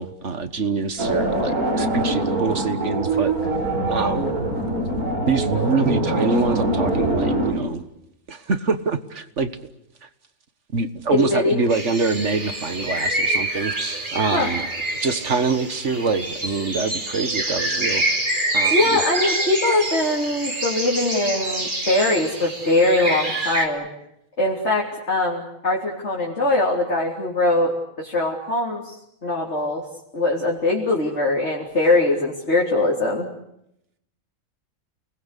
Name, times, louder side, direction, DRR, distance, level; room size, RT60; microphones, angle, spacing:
voice 1, 0.0-3.4 3.9-4.4 5.3-7.9 8.3-9.5 10.0-10.1 10.7-14.6 15.0-18.2 18.5-19.0, right 4 dB, 55° right, 11 dB, 1.8 m, -25 dB
sound 1, 1.0-7.5, right 1 dB, 90° right, 5.8 m, -23 dB
voice 2, 11.1-11.6 14.3-14.5 18.7-23.9 24.4-27.7 28.0-29.0 29.2-29.8 30.1-33.3, left 2 dB, 50° left, -2 dB, 3.8 m, -21 dB
sound 2, 11.7-23.7, right 2 dB, 35° right, 3.1 m, -26 dB
29.5 x 20.0 x 8.3 m, 0.80 s
omnidirectional pair, 1.5 m